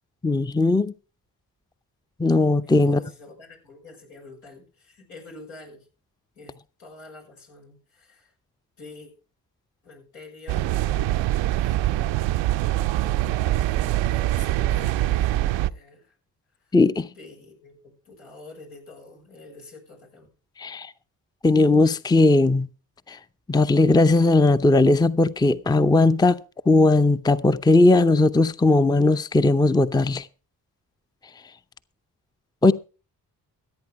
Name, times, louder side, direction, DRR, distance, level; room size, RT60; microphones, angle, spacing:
voice 1, 0.2-0.9 2.2-3.0 16.7-17.1 20.6-20.9 21.4-22.7 23.1-23.2 23.5-26.4 26.7-30.3 32.6-32.7, left 2 dB, 10° left, 0.6 m, -18 dB
voice 2, 2.9-5.9 6.3-6.5 6.8-8.3 8.8-9.1 9.8-11.3 11.5-16.1 16.6-16.8 17.0-20.3, left 3 dB, 80° left, 5.9 m, -46 dB
sound 1, 10.5-15.7, right 14 dB, 75° right, 0.6 m, -23 dB
15.0 x 8.8 x 4.8 m
hypercardioid pair, 40°, 45 cm